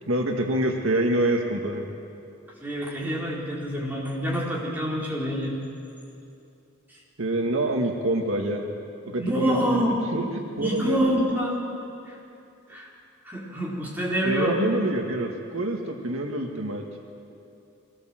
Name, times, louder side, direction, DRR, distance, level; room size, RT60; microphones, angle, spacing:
voice 1, 0.1-1.8 7.2-8.6 9.1-9.9 10.1-11.1 14.2-16.8, right 1 dB, 75° right, 3 dB, 1.8 m, -26 dB
voice 2, 2.6-5.5 9.2-10.0 10.6-11.6 12.0-12.2 12.7-12.9 13.2-14.5, equal, 10° right, -5 dB, 4.2 m, -26 dB
23.5 x 17.5 x 7.7 m, 2.6 s
head